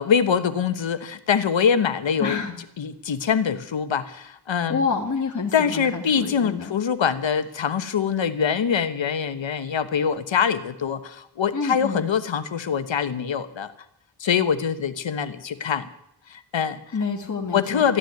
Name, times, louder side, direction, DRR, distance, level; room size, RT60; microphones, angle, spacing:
voice 1, 0.0-2.4 2.8-4.8 5.5-13.7 14.2-15.9 16.3-16.8 17.5-18.0, left 7 dB, 75° left, 11 dB, 1.2 m, -24 dB
voice 2, 2.2-2.6 4.7-6.7 11.5-12.0 16.9-17.9, left 5 dB, 40° left, 1 dB, 1.7 m, -28 dB
14.0 x 10.5 x 9.4 m, 0.77 s
wide cardioid pair, 120°, 46 cm